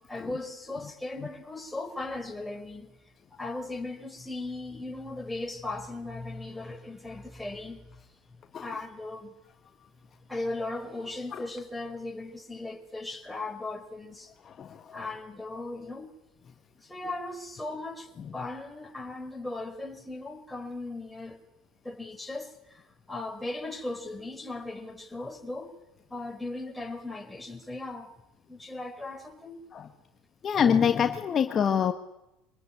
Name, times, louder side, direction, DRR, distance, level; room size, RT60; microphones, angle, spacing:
voice 1, 0.1-2.9 3.3-8.0 8.6-9.3 10.3-14.3 14.9-16.2 16.8-21.4 21.8-25.8 26.1-28.1 28.5-29.6, left 2 dB, 5° left, 4.5 m, -37 dB
voice 2, 14.4-15.0 29.7-29.9 30.4-31.9, left 7 dB, 40° left, 1.5 m, -25 dB
24.0 x 19.5 x 9.9 m
hypercardioid pair, 80°, 0 cm